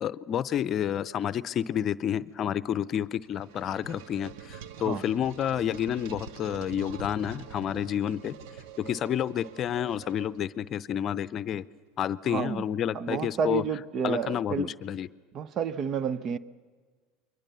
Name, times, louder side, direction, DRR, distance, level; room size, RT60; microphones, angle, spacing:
voice 1, 0.0-8.3 8.8-11.6 12.0-13.6 14.0-15.1, left 9 dB, 45° left, 0.6 m, -30 dB
sound 1, 3.0-10.7, right 8 dB, 70° right, 1.1 m, -45 dB
voice 2, 12.3-12.6 12.9-14.7 15.3-16.4, right 7 dB, 45° right, 0.9 m, -30 dB
29.0 x 23.0 x 6.9 m
hypercardioid pair, 90°, 0 cm